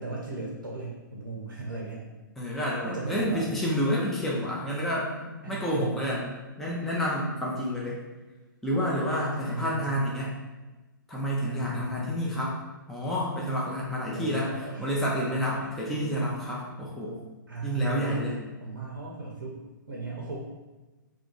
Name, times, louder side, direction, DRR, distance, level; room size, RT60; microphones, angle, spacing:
voice 1, 0.0-2.0 2.8-3.5 5.4-6.0 9.4-10.1 11.4-12.2 14.1-15.0 15.5-15.7 16.5-16.6 17.5-18.3 18.6-20.4, right 3 dB, 80° right, -3 dB, 0.6 m, -37 dB
voice 2, 2.4-8.0 8.6-10.3 11.1-12.6 12.9-17.2 17.6-18.4, equal, ahead, -6 dB, 0.4 m, -29 dB
2.5 x 2.4 x 3.8 m, 1.2 s
figure-of-eight pair, 115°, 11 cm